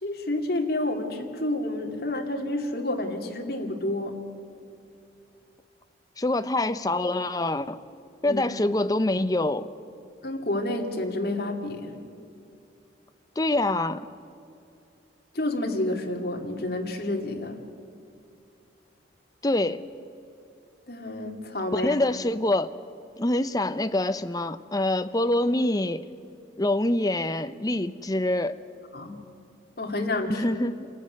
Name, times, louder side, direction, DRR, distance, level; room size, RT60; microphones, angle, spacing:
voice 1, 0.0-4.2 8.2-8.4 10.2-12.0 15.3-17.6 20.9-21.9 28.9-29.1 29.8-30.6, left 1 dB, 55° left, 2 dB, 2.4 m, -29 dB
voice 2, 6.2-7.8 8.2-9.7 13.4-14.1 19.4-19.9 21.7-22.7 23.2-26.1 26.6-28.6 30.3-30.9, left 1 dB, 20° left, 12 dB, 0.6 m, -25 dB
26.5 x 14.5 x 9.6 m, 2.5 s
head